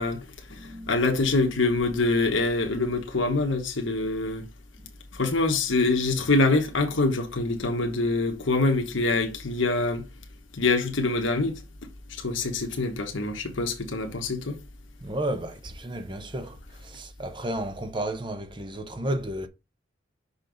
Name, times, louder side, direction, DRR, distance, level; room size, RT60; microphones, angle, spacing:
voice 1, 0.0-4.5 5.1-10.0 10.5-11.6 12.1-14.6, left 3 dB, 75° left, 1.2 m, -25 dB
voice 2, 0.6-1.0 15.0-19.5, right 1 dB, 25° right, 0.8 m, -32 dB
5.8 x 5.6 x 4.0 m
head